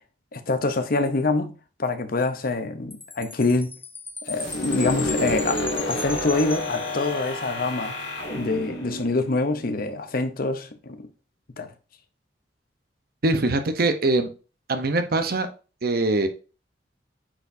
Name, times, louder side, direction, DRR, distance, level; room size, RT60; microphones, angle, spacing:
voice 1, 0.3-1.5 1.8-3.7 4.3-8.0 8.3-11.1 11.6-11.7, left 3 dB, 55° left, 0.7 m, -25 dB
Chime, 2.9-7.4, left 3 dB, 10° left, 0.6 m, -36 dB
sound 1, 4.3-10.0, left 1 dB, 80° left, 2.1 m, -30 dB
voice 2, 13.2-14.3 14.7-15.5 15.8-16.3, right 2 dB, 55° right, 0.8 m, -22 dB
8.7 x 4.6 x 2.7 m
head